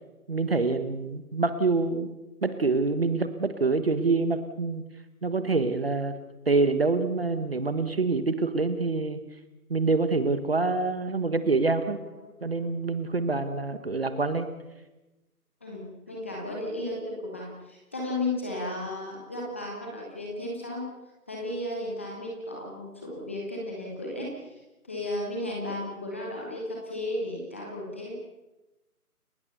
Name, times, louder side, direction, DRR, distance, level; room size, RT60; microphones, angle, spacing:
voice 1, 0.3-2.1 2.4-4.8 5.2-6.1 6.5-9.2 9.7-12.0 12.4-14.5, right 3 dB, 40° right, 11 dB, 1.4 m, -26 dB
voice 2, 15.6-20.9 21.3-28.2, left 1 dB, 10° left, -2 dB, 1.3 m, -34 dB
29.5 x 17.0 x 6.9 m, 1.0 s
figure-of-eight pair, 165°, 46 cm